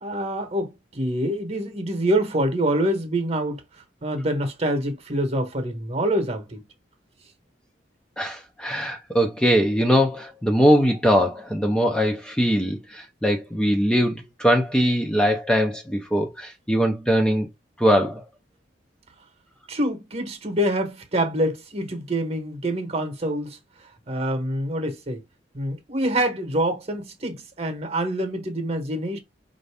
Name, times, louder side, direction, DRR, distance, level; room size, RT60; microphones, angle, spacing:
voice 1, 0.0-6.6 19.7-23.6 24.1-25.2 25.5-29.2, right 1 dB, 35° right, 1.1 m, -26 dB
voice 2, 8.2-17.5 17.8-18.2, equal, 5° left, 0.6 m, -21 dB
5.2 x 2.6 x 3.4 m
head